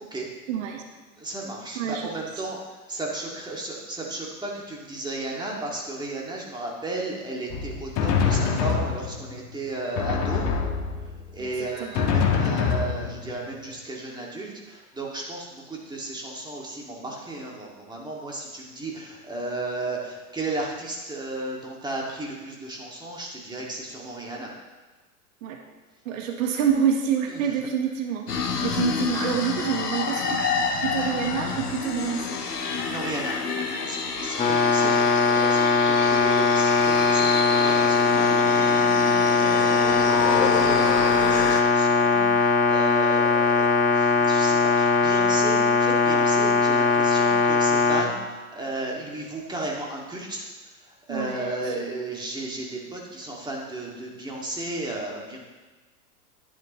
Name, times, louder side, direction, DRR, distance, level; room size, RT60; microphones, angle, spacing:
voice 1, 0.5-0.8 1.7-2.3 11.4-12.0 25.4-25.6 26.0-32.4 34.8-35.0 51.1-51.7, right 8 dB, 55° right, 3 dB, 1.4 m, -28 dB
voice 2, 1.2-2.6 2.9-10.5 11.3-24.5 27.3-27.5 32.7-50.5 50.8-55.4, right 2 dB, 10° right, -2 dB, 2.2 m, -34 dB
Drum, 7.5-9.4 10.0-11.3 11.9-13.5, left 6 dB, 35° left, 1.5 m, -25 dB
sound 1, 28.3-41.6, left 5 dB, 85° left, 1.2 m, -29 dB
sound 2, 34.4-48.0, left 4 dB, 15° left, 1.5 m, -20 dB
11.0 x 11.0 x 3.1 m, 1.3 s
figure-of-eight pair, 100°, 46 cm